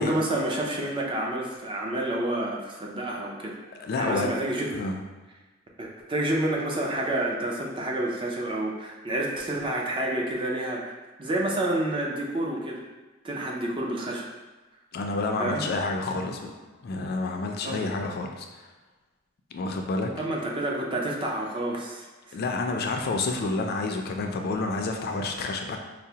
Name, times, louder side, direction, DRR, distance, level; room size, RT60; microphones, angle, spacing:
voice 1, 0.0-3.6 4.0-4.7 5.8-10.9 11.2-12.8 13.2-14.3 15.4-15.6 17.6-17.9 20.2-22.4, right 1 dB, 25° right, -1 dB, 0.4 m, -29 dB
voice 2, 3.8-4.3 4.7-5.0 14.9-16.5 16.8-18.7 19.5-20.2 22.3-25.8, left 3 dB, 50° left, 3 dB, 0.3 m, -29 dB
4.6 x 2.0 x 2.8 m, 1.2 s
head